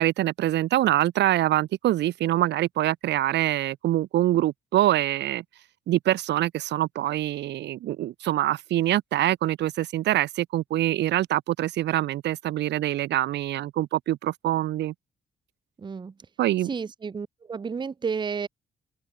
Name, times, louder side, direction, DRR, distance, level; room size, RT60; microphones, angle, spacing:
voice 1, 0.0-5.4 5.9-14.9 16.4-16.7, right 14 dB, 75° right, 0.5 m, -24 dB
voice 2, 15.8-16.1 16.7-18.5, right 5 dB, 25° right, 0.5 m, -31 dB
open air
cardioid pair, 85°, 18 cm